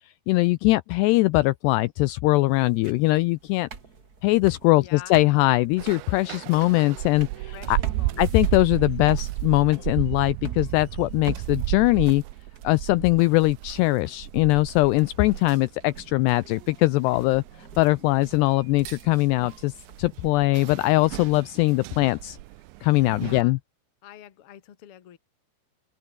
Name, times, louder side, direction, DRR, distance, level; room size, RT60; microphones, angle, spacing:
voice 1, 0.3-3.7 4.2-7.8 8.2-12.2 12.6-17.4 17.8-22.4 22.8-23.6, left 21 dB, 90° left, 2.4 m, -21 dB
sound 1, 2.4-20.8, right 5 dB, 35° right, 1.6 m, -45 dB
voice 2, 4.8-5.2 7.5-8.3 23.2-23.6 24.0-25.2, left 12 dB, 60° left, 1.5 m, -45 dB
sound 2, 5.8-23.4, right 20 dB, 80° right, 2.9 m, -33 dB
omnidirectional pair, 5.5 m